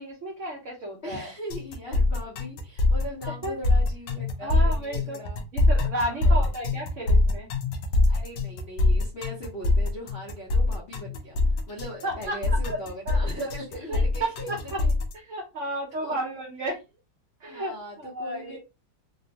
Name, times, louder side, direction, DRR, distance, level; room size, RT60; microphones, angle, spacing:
voice 1, 0.0-1.3 3.4-3.6 4.4-5.2 5.5-7.5 12.0-12.8 13.1-13.5 13.9-14.8 15.1-16.8 17.4-18.6, right 1 dB, 55° right, -1 dB, 0.9 m, -33 dB
voice 2, 1.0-5.4 6.1-6.5 8.1-14.9 16.0-16.1 17.4-18.6, equal, 50° left, -2 dB, 0.7 m, -40 dB
sound 1, 1.5-15.1, left 2 dB, 80° left, 1.2 m, -24 dB
3.7 x 2.0 x 2.7 m, 0.27 s
omnidirectional pair, 2.0 m